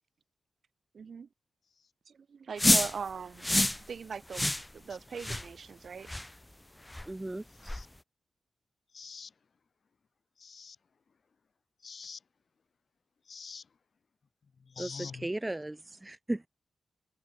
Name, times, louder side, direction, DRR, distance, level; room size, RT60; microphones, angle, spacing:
voice 1, 0.9-1.3 2.1-3.5 3.8-6.1, right 6 dB, 65° right, 3.7 m, -41 dB
sound 1, 2.6-2.9 3.4-3.8 4.3-4.7 5.2-5.5 6.1-6.3 6.9-7.1 7.7-7.8, left 1 dB, 15° left, 0.5 m, -27 dB
voice 2, 7.1-7.8 14.8-16.5, right 1 dB, 20° right, 1.2 m, -36 dB
voice 3, 8.9-9.3 10.4-10.8 11.8-12.2 13.3-13.7 14.6-15.3, left 5 dB, 60° left, 1.9 m, -45 dB
cardioid pair, 50°, 0 cm